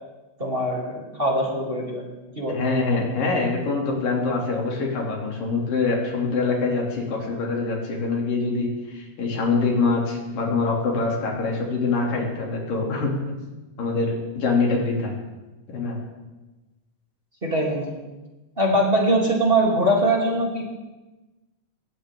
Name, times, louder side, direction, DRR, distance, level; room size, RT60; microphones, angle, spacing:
voice 1, 0.4-2.6 17.4-18.0 18.6-20.6, right 1 dB, 15° right, -4 dB, 3.1 m, -22 dB
voice 2, 2.5-13.1 13.8-15.1 15.7-16.0, left 3 dB, 85° left, -1 dB, 4.6 m, -24 dB
21.5 x 17.0 x 3.8 m, 1.1 s
omnidirectional pair, 3.8 m